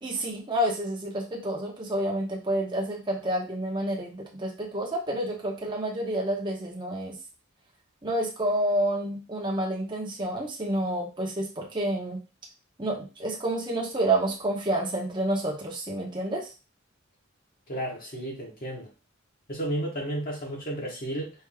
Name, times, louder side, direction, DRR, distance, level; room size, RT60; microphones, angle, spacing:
voice 1, 0.0-7.1 8.0-12.2 12.8-16.5, right 1 dB, 20° right, -1 dB, 0.9 m, -29 dB
voice 2, 17.7-18.9 19.5-21.3, right 1 dB, 45° left, -2 dB, 1.1 m, -32 dB
4.5 x 2.7 x 3.5 m, 0.32 s
head